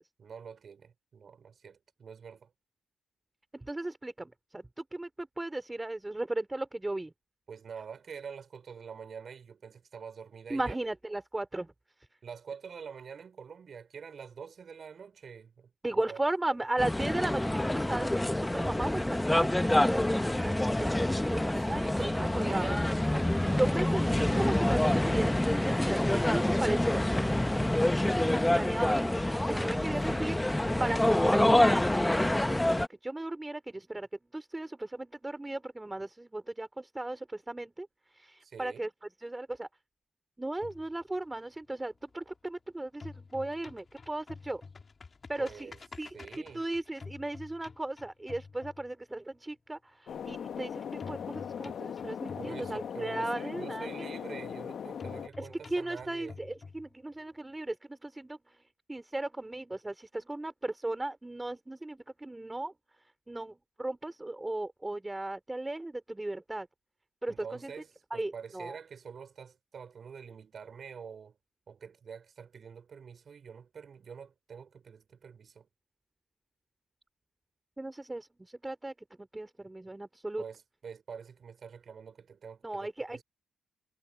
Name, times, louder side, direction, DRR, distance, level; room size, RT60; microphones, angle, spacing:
voice 1, 0.2-2.5 7.5-10.8 12.2-15.7 16.1-16.2 21.4-24.6 29.7-30.3 30.8-31.0 38.4-38.9 45.4-45.8 46.1-46.6 52.4-56.3 67.3-71.4 71.7-75.7 80.4-83.2, right 6 dB, 55° right, 4.4 m, -46 dB
voice 2, 3.5-7.1 10.5-11.7 15.8-21.8 22.4-22.7 23.6-29.1 29.5-30.4 30.8-34.1 34.3-37.9 38.1-38.9 39.2-39.7 40.4-44.6 45.3-45.7 46.0-54.1 55.4-58.6 58.9-62.7 63.3-66.7 67.2-67.7 68.1-68.8 77.8-80.4 82.6-83.2, right 2 dB, 15° right, 4.2 m, -36 dB
sound 1, 16.8-32.9, left 1 dB, 10° left, 1.0 m, -27 dB
sound 2, 40.6-42.6 42.9-49.3 51.0-53.3 55.0-57.3, left 4 dB, 40° left, 2.9 m, -49 dB
sound 3, 50.1-55.3, left 8 dB, 70° left, 1.3 m, -39 dB
cardioid pair, 65°, 0 cm